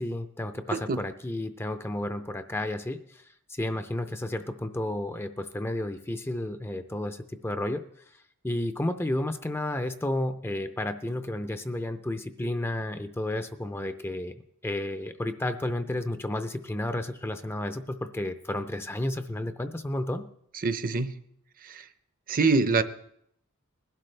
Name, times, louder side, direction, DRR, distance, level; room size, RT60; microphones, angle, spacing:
voice 1, 0.0-3.2 3.5-7.8 8.4-14.4 14.6-20.2, left 1 dB, 10° left, 8 dB, 0.5 m, -32 dB
voice 2, 20.6-21.1 21.6-21.8 22.3-22.8, right 3 dB, 40° right, 11 dB, 0.7 m, -25 dB
20.5 x 12.0 x 3.3 m, 0.70 s
head